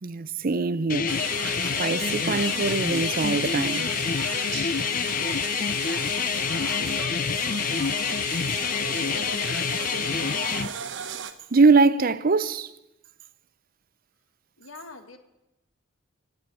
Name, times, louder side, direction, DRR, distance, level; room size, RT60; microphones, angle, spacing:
voice 1, 0.0-1.2 1.6-3.9 11.5-12.7, right 4 dB, 45° right, 0.6 m, -22 dB
sound 1, 0.9-10.7, left 7 dB, 40° left, 0.5 m, -27 dB
sound 2, 1.1-11.3, right 7 dB, 60° right, 1.0 m, -35 dB
voice 2, 8.6-9.9 14.6-15.2, left 3 dB, 80° left, 1.7 m, -47 dB
16.5 x 9.4 x 8.4 m
head